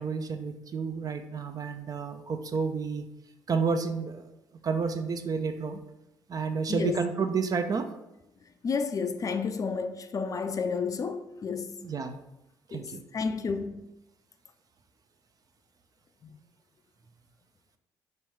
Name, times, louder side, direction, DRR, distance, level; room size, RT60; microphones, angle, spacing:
voice 1, 0.0-3.0 3.5-4.3 4.6-5.8 6.3-7.9 11.8-12.2 12.7-13.0, right 5 dB, 40° right, 0.5 m, -30 dB
voice 2, 6.7-7.0 8.6-11.9 12.7-13.8, left 5 dB, 40° left, 0.4 m, -31 dB
3.1 x 3.0 x 4.5 m
hypercardioid pair, 45°, 9 cm